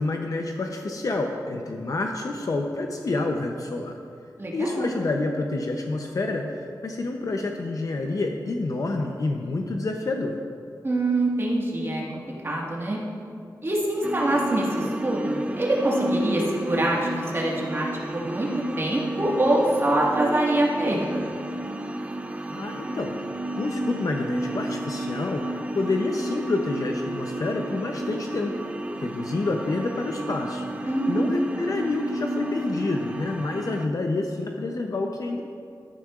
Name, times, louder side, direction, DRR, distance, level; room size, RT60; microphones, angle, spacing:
voice 1, 0.0-4.0 4.5-10.4 22.5-23.2 23.6-28.6 29.0-30.7 31.1-35.4, left 2 dB, 50° left, 2 dB, 0.6 m, -28 dB
voice 2, 4.4-4.9 10.8-13.0 13.6-18.5 18.8-21.3 30.8-31.4, right 1 dB, 35° right, -4 dB, 1.6 m, -25 dB
sound 1, 14.0-33.9, right 1 dB, 15° right, 0.4 m, -32 dB
13.0 x 9.2 x 2.4 m, 2.3 s
wide cardioid pair, 130°, 7 cm